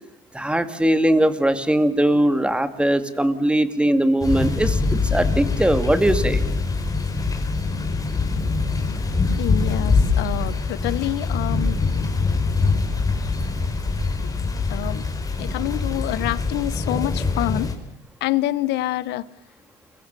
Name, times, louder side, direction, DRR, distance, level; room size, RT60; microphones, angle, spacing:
voice 1, 0.3-6.4, right 1 dB, 5° right, 2.4 m, -20 dB
sound 1, 4.2-17.7, left 4 dB, 20° left, 4.9 m, -23 dB
voice 2, 9.4-11.8 14.2-14.3 14.7-15.0 15.4-17.7 18.2-19.2, left 15 dB, 85° left, 1.2 m, -26 dB
29.0 x 22.5 x 6.9 m
cardioid pair, 110°, 17 cm